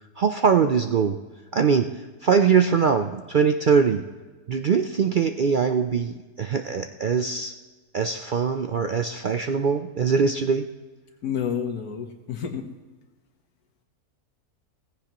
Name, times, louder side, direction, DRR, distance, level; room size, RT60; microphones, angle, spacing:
voice 1, 0.2-1.2 1.5-1.9 2.2-4.0 4.5-7.5 7.9-10.7, right 6 dB, 65° right, 6 dB, 0.4 m, -22 dB
voice 2, 11.2-12.7, left 8 dB, 90° left, 5 dB, 1.7 m, -29 dB
17.0 x 15.0 x 3.0 m, 1.3 s
omnidirectional pair, 1.5 m